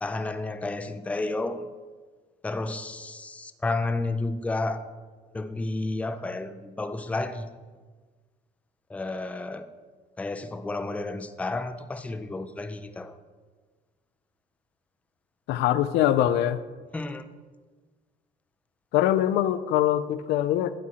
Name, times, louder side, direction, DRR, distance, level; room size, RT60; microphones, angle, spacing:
voice 1, 0.0-1.7 2.4-4.9 5.3-7.5 8.9-9.7 10.2-13.2 16.9-17.2, left 2 dB, 10° left, 9 dB, 0.4 m, -31 dB
voice 2, 15.5-16.6 18.9-20.7, left 12 dB, 80° left, 12 dB, 0.4 m, -23 dB
9.3 x 7.2 x 2.8 m, 1.4 s
cardioid pair, 110°, 17 cm